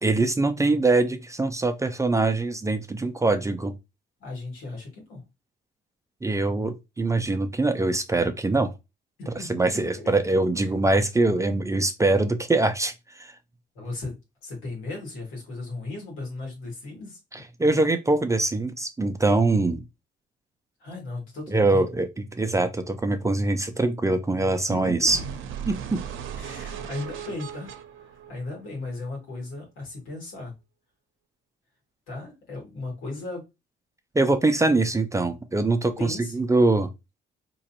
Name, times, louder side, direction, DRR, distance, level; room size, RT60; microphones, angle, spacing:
voice 1, 0.0-3.7 6.2-8.7 9.3-13.3 17.3-19.8 21.5-25.2 25.7-26.0 34.1-36.9, right 2 dB, 15° right, 0.5 m, -23 dB
voice 2, 4.2-5.2 9.2-9.6 10.0-10.1 13.7-14.1 14.4-17.2 20.8-21.8 24.7-24.9 26.4-30.5 32.1-33.4 36.0-36.3, left 2 dB, 90° left, 2.3 m, -36 dB
sound 1, 25.1-29.0, right 8 dB, 85° right, 0.6 m, -37 dB
3.8 x 3.0 x 2.9 m
cardioid pair, 90°, 20 cm